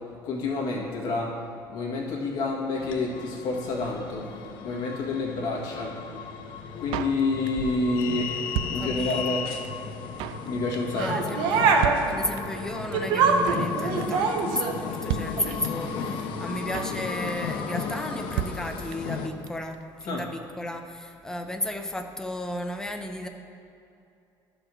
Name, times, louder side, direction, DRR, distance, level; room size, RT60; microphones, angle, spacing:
voice 1, 0.2-1.3 1.7-4.2 4.6-5.9 6.8-9.4 10.4-11.1 20.1-20.2, left 3 dB, 50° left, -2 dB, 1.9 m, -28 dB
sound 1, 2.8-19.3, left 6 dB, 65° left, 0.8 m, -35 dB
Drum kit, 6.9-7.7 8.0-8.1 8.3-9.4 9.6-9.7 9.9-10.5 10.7-11.0 11.3-11.4 11.6-11.7 11.8-12.7 12.9-13.0 13.2-13.8 14.0-14.3 14.6-14.7 14.8-14.9 15.1-15.9 16.2-16.3 16.5-17.0 17.3-17.6 17.8-17.9 18.1-18.2 18.4-19.2 19.5-19.6 19.7-19.8, right 10 dB, 90° right, 0.3 m, -33 dB
voice 2, 8.7-9.4 10.9-11.8 12.1-23.3, left 1 dB, 5° left, 5 dB, 0.5 m, -34 dB
sound 2, 11.0-12.0 12.9-14.8 15.4-15.5, right 5 dB, 65° right, 0.9 m, -23 dB
12.0 x 5.0 x 6.3 m, 2.7 s
cardioid pair, 175°, 9 cm